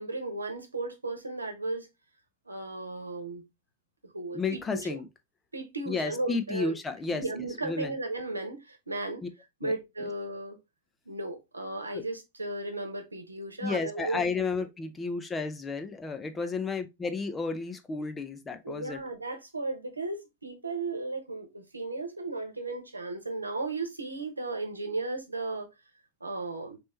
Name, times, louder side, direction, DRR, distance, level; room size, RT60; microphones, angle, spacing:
voice 1, 0.0-1.9 2.5-3.4 4.0-4.9 5.5-6.8 7.1-9.2 9.6-10.6 11.1-14.2 14.6-14.7 16.4-16.5 18.6-25.7 26.2-26.8, right 2 dB, 80° right, 1.0 m, -35 dB
voice 2, 4.3-5.1 5.9-7.9 9.2-9.3 9.6-9.7 11.9-12.0 13.6-19.0, left 4 dB, 15° left, 0.5 m, -32 dB
4.3 x 3.1 x 3.1 m
figure-of-eight pair, 90°, 0 cm